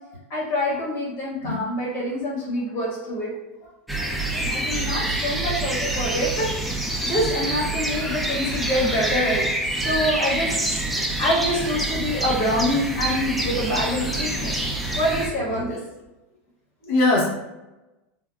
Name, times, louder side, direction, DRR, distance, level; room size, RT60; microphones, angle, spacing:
voice 1, 0.3-3.3 4.4-9.5 9.8-10.9 11.2-15.8, equal, 40° left, -4 dB, 1.3 m, -26 dB
voice 2, 3.9-4.9 16.8-17.4, left 2 dB, 75° left, -3 dB, 1.0 m, -24 dB
sound 1, 3.9-15.3, right 1 dB, ahead, 0.3 m, -26 dB
3.4 x 2.2 x 2.3 m, 1.0 s
supercardioid pair, 135°, 7 cm